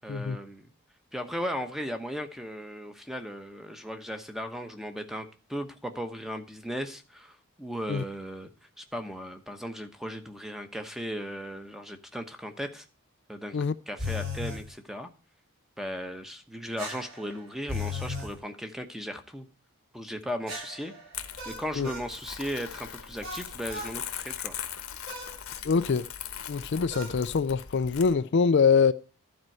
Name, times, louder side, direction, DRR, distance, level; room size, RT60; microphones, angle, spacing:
voice 1, 0.0-0.7 1.1-8.5 8.8-12.9 13.3-13.6 13.9-15.1 15.8-19.5 19.9-20.9 21.4-24.6, equal, ahead, 1.0 m, -36 dB
sound 1, 14.0-14.6 16.8-18.3 20.5-22.1 23.2-24.0 25.1-25.4 26.9-27.2, left 3 dB, 65° right, 6.8 m, -36 dB
Crumpling crinkling, 21.1-28.1, left 9 dB, 75° left, 1.1 m, -40 dB
voice 2, 25.6-26.1 26.5-28.9, left 5 dB, 50° left, 0.4 m, -24 dB
12.0 x 4.5 x 7.7 m
head